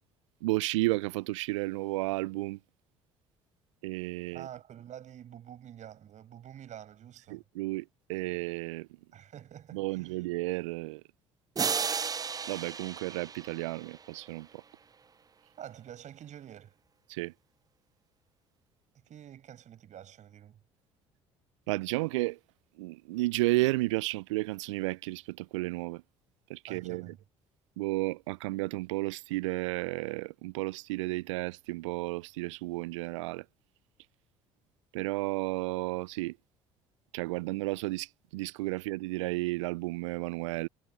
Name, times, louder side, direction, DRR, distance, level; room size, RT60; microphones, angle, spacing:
voice 1, 0.4-2.6 3.8-4.5 7.3-8.9 9.7-11.0 12.5-14.5 17.1-17.3 21.7-22.4 22.8-26.0 26.5-27.1 27.8-33.4 34.9-36.4 37.1-40.7, right 21 dB, 75° right, 0.5 m, -32 dB
voice 2, 4.3-7.4 9.1-10.2 15.6-16.8 18.9-20.6 26.7-27.2, right 10 dB, 50° right, 6.5 m, -48 dB
sound 1, 11.6-14.2, right 6 dB, 25° right, 0.5 m, -34 dB
hypercardioid pair, 60°, 16 cm